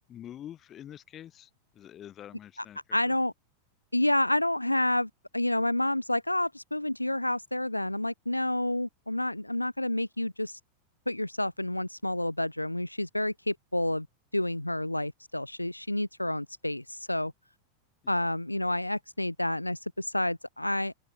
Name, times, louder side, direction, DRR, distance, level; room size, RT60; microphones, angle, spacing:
voice 1, 0.1-3.0 18.0-18.2, left 11 dB, 30° left, 5.2 m, -46 dB
voice 2, 2.9-3.3 3.9-10.6 11.1-14.1 14.3-17.3 18.1-20.9, left 1 dB, 85° left, 1.9 m, -29 dB
open air
figure-of-eight pair, 90°, 0 cm